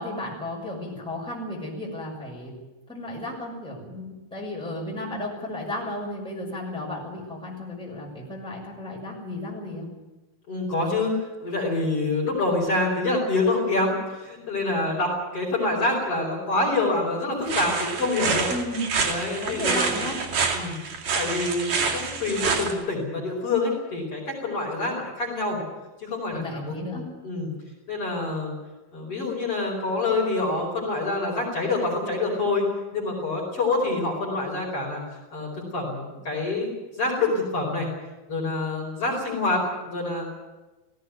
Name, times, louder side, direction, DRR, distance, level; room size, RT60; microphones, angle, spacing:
voice 1, 0.0-2.5 2.9-9.9 18.5-18.9 19.4-20.2 26.3-27.0, left 1 dB, ahead, -3 dB, 5.9 m, -33 dB
voice 2, 10.5-11.1 11.4-18.5 19.0-20.0 20.5-20.8 21.2-25.6 26.0-27.5 27.9-28.5 28.9-32.7 32.9-35.0 35.3-36.7 37.0-37.9 38.3-40.3, left 2 dB, 35° left, -2 dB, 5.8 m, -26 dB
sound 1, 17.5-22.7, right 5 dB, 60° right, 4.0 m, -27 dB
18.0 x 17.0 x 9.4 m, 1.1 s
omnidirectional pair, 4.4 m